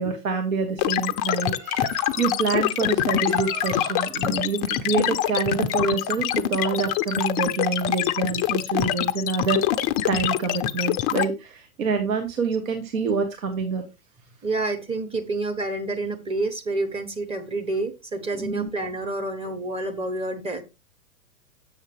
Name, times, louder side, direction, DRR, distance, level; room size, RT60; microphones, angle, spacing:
voice 1, 0.0-1.6 2.2-9.6 10.1-13.8 18.4-18.7, right 4 dB, 70° right, 4 dB, 1.5 m, -26 dB
sound 1, 0.8-11.2, left 12 dB, 30° left, 0.5 m, -24 dB
Bird, 1.4-6.5, right 5 dB, 55° right, 3.3 m, -42 dB
voice 2, 14.4-20.6, right 2 dB, 15° right, 5 dB, 0.9 m, -28 dB
7.4 x 6.5 x 3.3 m, 0.25 s
hypercardioid pair, 110°, 42 cm